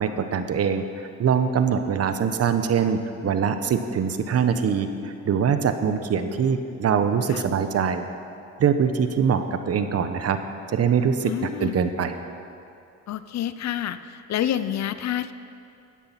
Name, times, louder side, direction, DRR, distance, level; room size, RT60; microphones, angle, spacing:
voice 1, 0.0-8.0 8.6-10.4 10.7-12.1, right 7 dB, 55° right, 9 dB, 1.0 m, -23 dB
voice 2, 11.3-11.8 13.1-15.3, left 11 dB, 65° left, 13 dB, 0.6 m, -28 dB
13.5 x 10.5 x 5.8 m, 2.5 s
cardioid pair, 90°, 30 cm